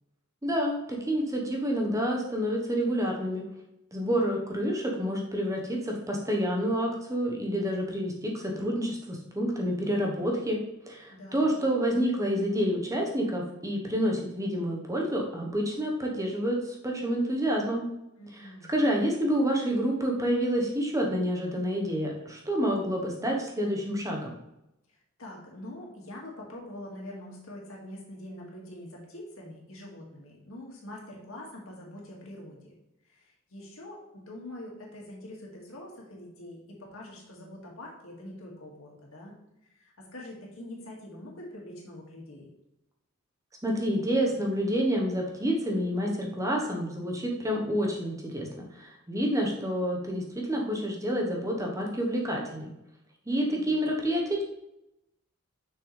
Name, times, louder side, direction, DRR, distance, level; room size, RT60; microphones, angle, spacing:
voice 1, 0.4-3.4 3.9-10.6 10.9-17.8 18.3-24.3 43.6-52.7 53.3-54.4, equal, 15° right, 0 dB, 1.0 m, -28 dB
voice 2, 11.1-11.6 18.2-18.7 24.9-32.7 33.0-39.3 39.6-42.5 53.3-53.7, left 1 dB, 65° left, -2 dB, 2.1 m, -44 dB
6.8 x 6.2 x 3.3 m, 0.87 s
head